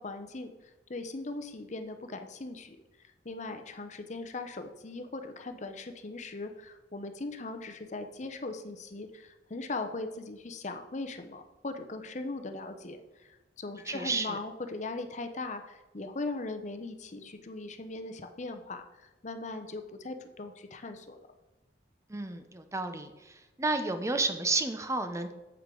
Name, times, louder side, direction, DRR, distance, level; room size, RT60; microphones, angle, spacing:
voice 1, 0.0-2.8 3.2-21.3, left 3 dB, 40° left, 7 dB, 0.7 m, -39 dB
voice 2, 13.9-14.4 22.1-23.1 23.6-25.3, right 3 dB, 15° right, 8 dB, 0.6 m, -31 dB
8.1 x 8.0 x 3.8 m, 1.0 s
head